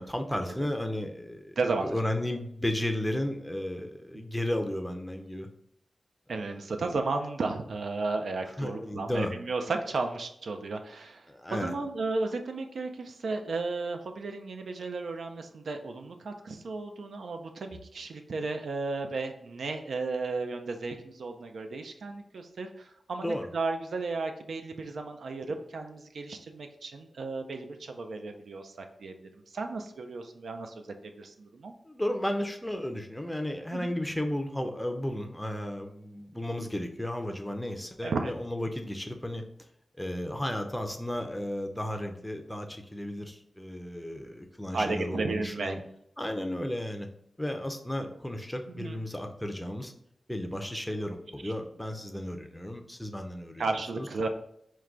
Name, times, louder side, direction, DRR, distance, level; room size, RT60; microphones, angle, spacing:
voice 1, 0.0-5.5 6.3-6.5 8.6-9.3 11.3-11.7 23.2-23.5 31.9-39.4 40.0-45.8 46.2-47.1 47.4-49.9 50.3-53.6 53.9-54.1, left 1 dB, 5° left, 5 dB, 0.5 m, -34 dB
voice 2, 1.6-1.9 6.3-11.3 11.5-31.7 33.7-33.9 38.0-38.3 44.7-45.8 48.7-49.0 50.9-51.1 51.4-51.5 53.6-54.3, right 3 dB, 80° right, 5 dB, 0.4 m, -34 dB
4.6 x 2.2 x 3.7 m, 0.73 s
wide cardioid pair, 95°, 0 cm